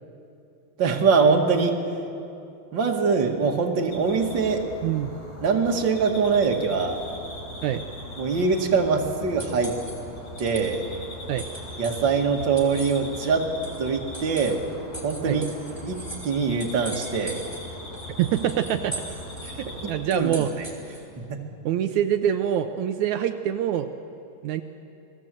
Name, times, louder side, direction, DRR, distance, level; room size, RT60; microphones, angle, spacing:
voice 1, 0.8-1.7 2.7-4.6 5.4-7.0 8.2-9.7 10.4-10.8 11.8-13.5 13.8-14.6 15.0-15.5 15.9-16.0 16.2-17.4 19.8-20.7 21.3-21.4, right 5 dB, 40° right, 2 dB, 2.0 m, -23 dB
sound 1, 3.9-19.9, left 1 dB, 50° left, 6.7 m, -40 dB
sound 2, 8.4-21.2, right 1 dB, 5° left, 3.3 m, -42 dB
voice 2, 18.2-18.9 19.4-20.5 21.6-23.9 24.4-24.6, right 10 dB, 85° right, 7 dB, 1.6 m, -25 dB
29.5 x 21.0 x 7.7 m, 2.7 s
omnidirectional pair, 4.3 m